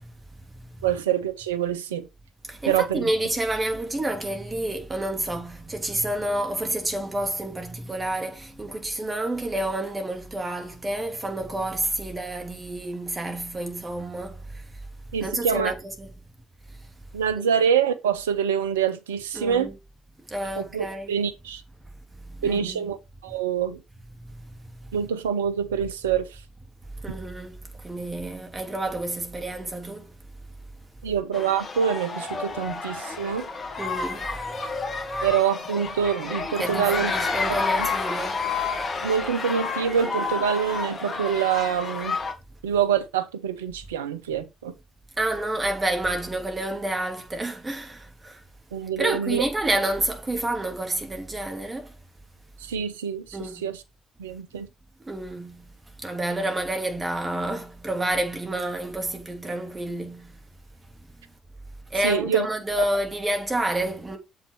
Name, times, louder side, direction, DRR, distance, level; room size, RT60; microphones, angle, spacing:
voice 1, 0.8-2.1 2.7-3.1 15.1-15.7 17.1-19.7 20.6-21.6 22.4-23.0 23.2-23.8 24.9-26.4 31.0-33.5 35.2-37.1 37.5-37.9 39.0-42.2 42.6-44.7 48.7-49.4 52.6-53.8 54.2-54.7 62.0-62.5, right 8 dB, 85° right, 0.7 m, -25 dB
voice 2, 2.5-14.4 15.2-16.1 17.4-17.5 19.3-19.7 20.3-21.1 22.3-22.8 27.0-27.6 27.8-30.1 33.8-34.3 36.6-38.4 45.2-48.4 49.0-51.9 53.3-53.7 55.1-55.6 56.0-60.3 61.9-64.2, right 1 dB, 25° right, 3.0 m, -29 dB
sound 1, 31.3-42.3, left 4 dB, 40° left, 2.1 m, -30 dB
7.4 x 5.8 x 4.6 m
hypercardioid pair, 50°, 0 cm